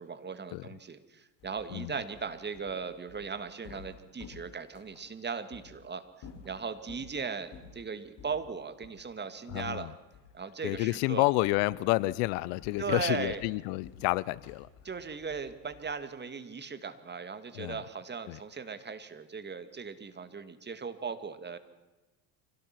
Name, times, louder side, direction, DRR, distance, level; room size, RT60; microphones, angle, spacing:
voice 1, 0.0-6.0 6.4-9.9 10.3-11.3 12.8-13.4 14.8-21.6, right 5 dB, 20° right, 11 dB, 2.0 m, -38 dB
sound 1, 1.4-5.0 5.5-5.7 6.1-7.1 7.5-7.8 8.2-8.4 8.8-9.0 9.5-10.4 10.7-11.1 11.4-11.7 12.1-16.0, left 6 dB, 50° left, 5.8 m, -52 dB
voice 2, 9.5-9.9 10.6-14.7 17.5-17.8 18.3-18.4, left 21 dB, 65° left, 22 dB, 0.8 m, -29 dB
25.0 x 17.5 x 5.9 m, 1.1 s
supercardioid pair, 100°, 50 cm